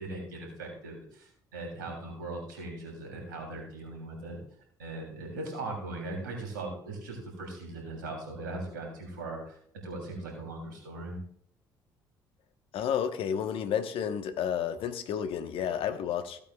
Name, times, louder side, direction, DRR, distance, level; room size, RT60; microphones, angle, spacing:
voice 1, 0.0-4.4 4.8-9.6 9.8-11.2, right 2 dB, 90° right, 1 dB, 3.1 m, -39 dB
voice 2, 12.7-16.4, left 8 dB, 65° left, 9 dB, 1.1 m, -31 dB
15.5 x 8.5 x 2.3 m, 0.64 s
hypercardioid pair, 55°, 10 cm